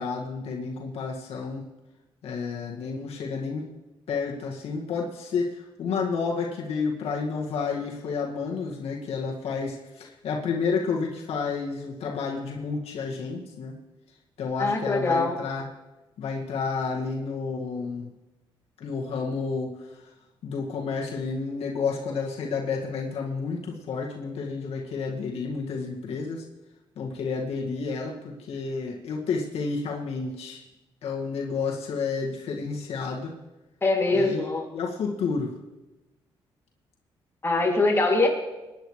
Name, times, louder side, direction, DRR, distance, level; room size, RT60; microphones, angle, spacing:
voice 1, 0.0-1.6 2.2-3.7 4.1-13.8 14.4-15.7 16.2-18.1 18.8-19.7 20.4-26.4 27.0-30.6 31.0-33.3 34.1-34.4 34.7-35.5, left 5 dB, 85° left, -1 dB, 2.1 m, -30 dB
voice 2, 14.6-15.3 33.8-34.6 37.4-38.3, left 2 dB, 25° left, -1 dB, 2.9 m, -23 dB
24.0 x 10.5 x 3.3 m, 1.0 s
cardioid pair, 105°, 10 cm